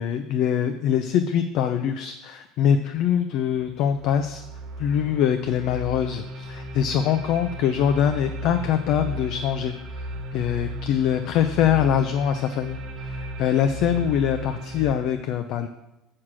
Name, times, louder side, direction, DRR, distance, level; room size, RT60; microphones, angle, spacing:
voice 1, 0.0-4.4 4.8-15.7, left 9 dB, 60° left, 8 dB, 0.6 m, -23 dB
sound 1, 3.6-14.9, equal, 55° right, 1.3 m, -35 dB
7.4 x 6.4 x 6.2 m, 0.94 s
cardioid pair, 145°, 0 cm